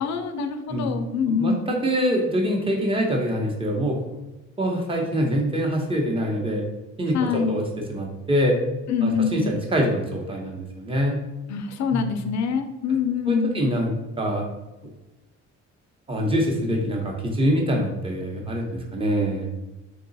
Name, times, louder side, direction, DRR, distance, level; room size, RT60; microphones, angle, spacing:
voice 1, 0.0-1.7 7.1-7.6 8.9-9.5 11.5-13.6, left 6 dB, 65° left, 7 dB, 0.5 m, -25 dB
voice 2, 1.3-4.0 4.6-6.6 7.0-7.6 7.9-8.6 9.0-11.2 11.9-12.1 13.3-14.4 16.1-19.5, equal, 20° right, 0 dB, 0.9 m, -24 dB
3.8 x 2.3 x 3.9 m, 1.0 s
cardioid pair, 90°, 30 cm